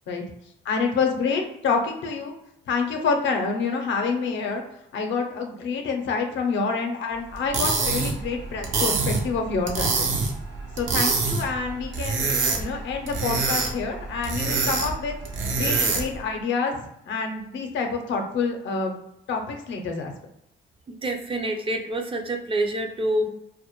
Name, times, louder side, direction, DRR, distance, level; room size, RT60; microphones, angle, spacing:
voice 1, 0.6-2.3 2.7-4.6 4.9-10.1 10.8-12.3 12.6-15.2 15.6-19.0 19.3-20.1, left 4 dB, 70° left, 4 dB, 0.5 m, -27 dB
sound 1, 7.3-16.2, right 4 dB, 75° right, 0.6 m, -26 dB
voice 2, 20.9-23.3, right 1 dB, 30° right, 4 dB, 0.3 m, -27 dB
2.2 x 2.0 x 2.9 m, 0.80 s
cardioid pair, 90°, 20 cm